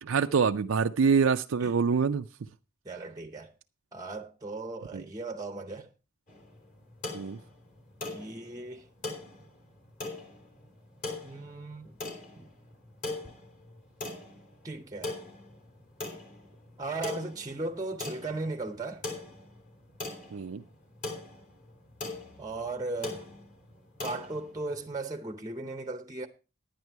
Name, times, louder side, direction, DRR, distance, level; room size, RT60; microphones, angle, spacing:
voice 1, 0.0-2.3 4.9-5.0 7.1-7.4 20.3-20.6, right 5 dB, 80° right, 0.5 m, -25 dB
voice 2, 2.8-3.5 3.9-5.9 8.1-8.9 11.2-12.0 12.4-12.5 14.6-15.2 16.8-19.0 22.4-23.3 24.0-26.3, right 3 dB, 15° right, 0.7 m, -37 dB
sound 1, 6.3-25.0, left 2 dB, 40° left, 3.1 m, -42 dB
10.5 x 9.4 x 4.5 m
head